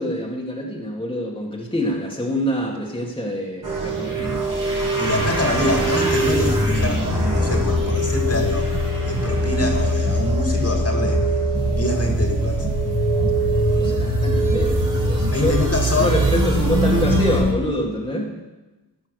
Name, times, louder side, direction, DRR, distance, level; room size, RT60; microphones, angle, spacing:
voice 1, 0.0-4.4 13.8-15.5 16.0-18.3, left 1 dB, 10° left, -2 dB, 1.9 m, -26 dB
sound 1, 3.6-17.4, right 1 dB, 50° right, 2.9 m, -22 dB
voice 2, 5.0-7.0 7.3-8.7 9.0-11.2 11.7-12.6 15.3-16.2, left 1 dB, 35° left, 2 dB, 2.3 m, -24 dB
sound 2, 11.5-17.5, left 3 dB, 70° left, 1.6 m, -27 dB
15.0 x 5.6 x 6.4 m, 1.1 s
wide cardioid pair, 50°, 40 cm